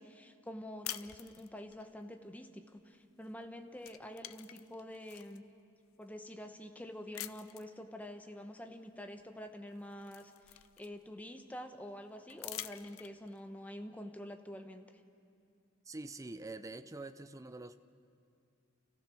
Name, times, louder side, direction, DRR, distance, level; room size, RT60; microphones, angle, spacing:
voice 1, 0.0-5.4 6.0-14.9, left 1 dB, 5° left, 6 dB, 0.9 m, -47 dB
sound 1, 0.8-1.8 3.2-3.5 3.8-5.4 6.0-6.1 7.1-7.8 9.2-9.3 9.7-11.2 12.3-13.4, left 14 dB, 75° left, 0.5 m, -46 dB
voice 2, 15.9-17.8, right 2 dB, 15° right, 11 dB, 0.5 m, -45 dB
29.5 x 14.5 x 6.2 m, 2.4 s
head